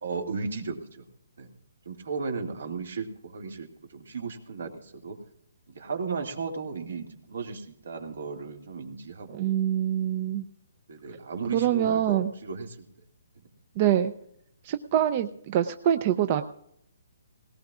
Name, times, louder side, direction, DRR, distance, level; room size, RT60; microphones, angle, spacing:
voice 1, 0.0-1.0 1.4-1.5 1.9-5.2 5.7-9.5 10.9-12.9, right 4 dB, 70° right, 4 dB, 2.2 m, -35 dB
voice 2, 9.3-10.5 11.5-12.3 13.8-14.1 14.6-16.4, right 10 dB, 30° right, 10 dB, 0.4 m, -25 dB
19.5 x 18.0 x 2.4 m, 0.72 s
hypercardioid pair, 170°, 0 cm